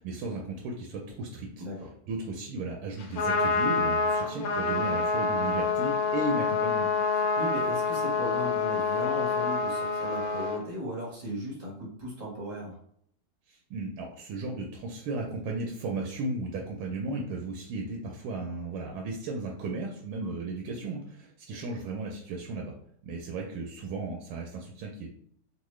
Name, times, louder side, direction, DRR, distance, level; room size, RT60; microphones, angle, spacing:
voice 1, 0.0-1.6 2.1-6.9 13.5-22.7 23.0-25.1, right 2 dB, 80° right, 0 dB, 1.4 m, -35 dB
Trumpet, 3.0-10.6, left 4 dB, 90° left, 1.6 m, -27 dB
voice 2, 7.1-12.8 20.2-20.3 21.5-21.6, equal, 35° right, -4 dB, 0.7 m, -37 dB
3.8 x 2.2 x 3.1 m, 0.65 s
omnidirectional pair, 2.3 m